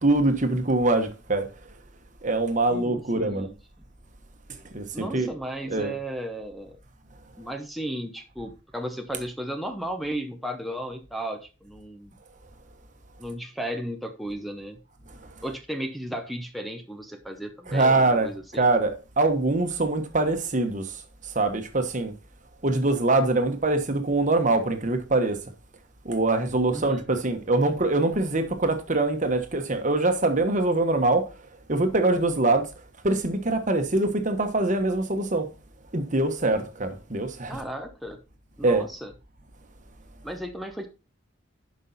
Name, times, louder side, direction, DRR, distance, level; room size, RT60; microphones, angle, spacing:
voice 1, 0.0-1.5 2.2-3.5 4.7-5.3 5.7-5.9 17.7-18.3 18.6-22.1 22.6-25.4 26.0-31.3 31.7-32.7 33.0-35.5 35.9-37.6 38.6-38.8, right 2 dB, 40° right, 1.2 m, -23 dB
voice 2, 2.7-3.6 4.9-6.8 7.4-12.1 13.2-14.8 15.4-18.6 26.7-27.0 37.5-38.2 38.6-39.1 40.2-40.9, right 1 dB, ahead, 0.8 m, -35 dB
11.0 x 5.4 x 4.1 m
head